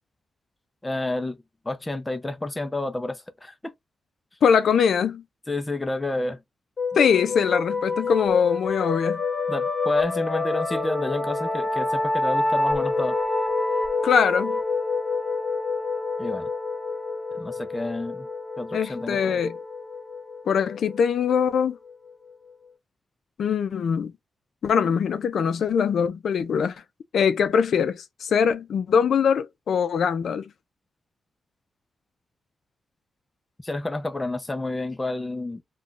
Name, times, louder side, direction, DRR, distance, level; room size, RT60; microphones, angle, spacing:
voice 1, 0.8-1.4 1.7-3.7 5.5-6.4 9.5-13.2 16.2-16.5 17.3-18.3 18.6-19.4 33.6-35.6, left 2 dB, 15° left, 0.4 m, -29 dB
voice 2, 4.4-5.2 7.0-9.2 14.0-14.6 18.7-19.6 20.5-21.8 23.4-24.1 24.6-26.7 27.1-30.4, left 7 dB, 80° left, 0.4 m, -22 dB
sound 1, 6.8-22.1, left 3 dB, 45° left, 1.1 m, -28 dB
2.4 x 2.2 x 3.7 m
wide cardioid pair, 175°, 0 cm